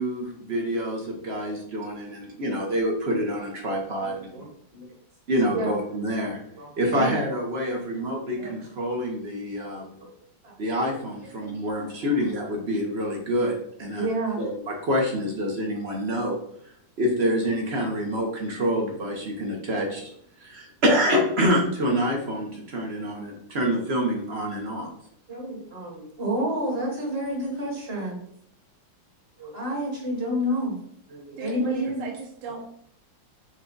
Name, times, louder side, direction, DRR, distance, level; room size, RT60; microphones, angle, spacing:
voice 1, 0.0-4.2 5.3-6.4 6.8-9.9 10.6-13.5 13.8-14.1 14.4-16.4 17.0-20.1 20.4-24.9, equal, 50° right, 0 dB, 0.7 m, -26 dB
voice 2, 4.0-4.5 4.7-4.9 5.5-5.8 6.6-7.2 7.7-8.1 8.4-8.5 9.6-10.1 10.4-10.5 11.4-12.1 12.5-12.6 13.9-14.4 25.3-28.2 29.4-30.8 31.1-32.1 32.4-32.6, right 1 dB, 35° right, -2 dB, 1.4 m, -30 dB
voice 3, 31.4-32.7, right 4 dB, 75° right, 1 dB, 1.3 m, -37 dB
6.0 x 2.2 x 3.8 m, 0.68 s
omnidirectional pair, 2.1 m